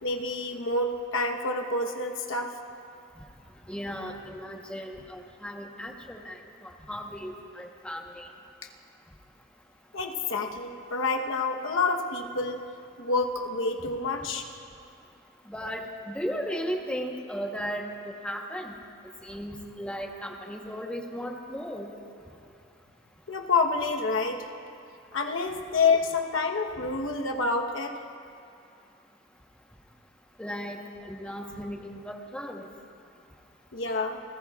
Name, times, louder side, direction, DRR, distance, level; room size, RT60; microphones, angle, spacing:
voice 1, 0.0-2.6 9.9-12.6 13.0-14.4 23.3-24.5 25.1-28.0 33.7-34.2, left 3 dB, 80° left, 3 dB, 1.0 m, -28 dB
voice 2, 3.7-6.4 6.6-8.3 15.5-18.7 19.2-21.9 30.4-32.7, equal, 5° left, 1 dB, 1.0 m, -36 dB
29.0 x 15.0 x 2.4 m, 2.5 s
head